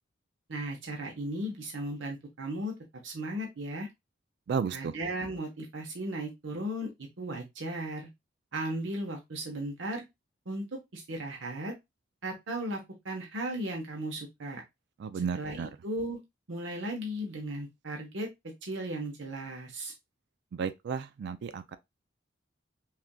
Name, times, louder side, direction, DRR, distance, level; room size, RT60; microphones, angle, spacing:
voice 1, 0.5-2.7 3.0-3.9 4.7-8.1 8.5-10.0 10.5-11.7 12.2-14.6 15.1-16.2 16.5-18.3 18.6-19.9, right 1 dB, 90° right, 1.0 m, -36 dB
voice 2, 4.5-4.9 15.0-15.7 20.6-21.8, right 6 dB, 65° right, 0.3 m, -33 dB
5.7 x 2.5 x 2.2 m
head